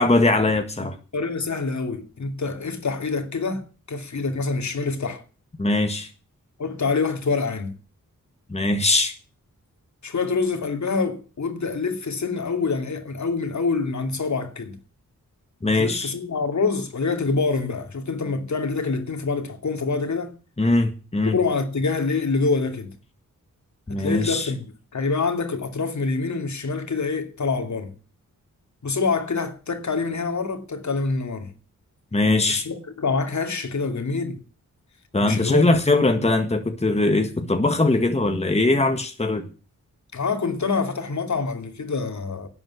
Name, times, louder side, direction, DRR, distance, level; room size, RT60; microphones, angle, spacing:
voice 1, 0.0-1.0 5.6-6.1 8.5-9.1 15.6-16.1 20.6-21.4 23.9-24.5 32.1-32.7 35.1-39.4, left 2 dB, 20° left, 1.7 m, -21 dB
voice 2, 1.1-5.2 6.6-7.7 10.0-14.8 15.7-20.3 21.3-22.9 24.0-24.7 24.9-27.9 28.8-31.5 32.5-34.4 35.2-35.7 36.0-36.2 40.1-42.5, left 4 dB, 60° left, 2.6 m, -26 dB
12.0 x 7.7 x 9.7 m
wide cardioid pair, 85°, 33 cm